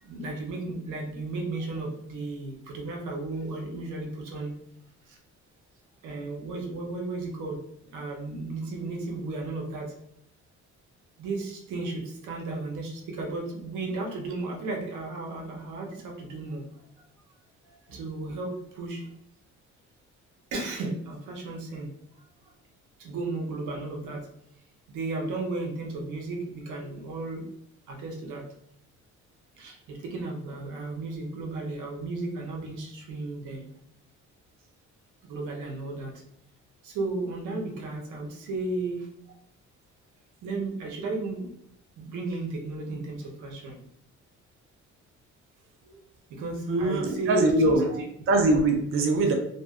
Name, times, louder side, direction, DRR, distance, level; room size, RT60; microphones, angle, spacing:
voice 1, 0.0-4.5 5.1-5.2 6.0-7.6 7.9-9.9 11.2-16.6 17.9-19.1 20.5-21.9 22.2-22.3 23.0-24.2 24.9-27.5 27.9-28.4 29.6-33.6 35.3-36.1 36.8-39.1 40.4-41.5 42.0-43.8 45.8-46.0 46.3-47.7 49.1-49.2, right 2 dB, 85° right, 0 dB, 0.7 m, -34 dB
voice 2, 46.7-49.3, right 2 dB, 45° right, 4 dB, 0.4 m, -23 dB
2.5 x 2.1 x 2.3 m, 0.73 s
cardioid pair, 90°, 30 cm